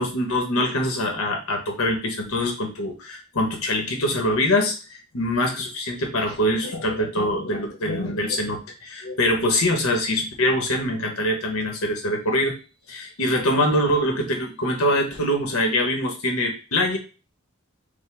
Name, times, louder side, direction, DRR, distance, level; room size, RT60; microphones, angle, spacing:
voice 1, 0.0-4.7 5.1-12.5 12.9-17.0, left 1 dB, 80° left, 3 dB, 1.2 m, -24 dB
5.4 x 2.2 x 3.4 m, 0.33 s
head